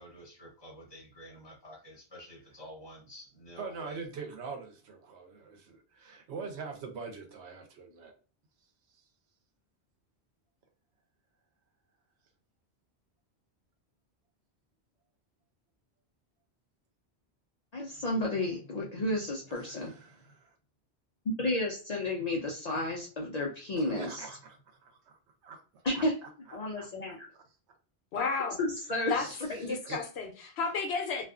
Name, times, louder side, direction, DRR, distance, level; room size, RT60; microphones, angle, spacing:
voice 1, 0.0-4.0, equal, 25° left, 0.9 m, -49 dB
voice 2, 3.6-8.1 9.0-9.1 19.5-20.6 23.8-27.2 29.2-30.0, right 5 dB, 85° right, 1.0 m, -44 dB
voice 3, 17.7-19.9 21.4-24.2 25.8-26.1 26.5-27.3 28.6-30.0, left 1 dB, 55° left, 0.5 m, -32 dB
voice 4, 28.1-28.6 29.1-29.3 29.7-31.3, left 4 dB, 80° left, 0.9 m, -32 dB
2.5 x 2.3 x 2.3 m
omnidirectional pair, 1.1 m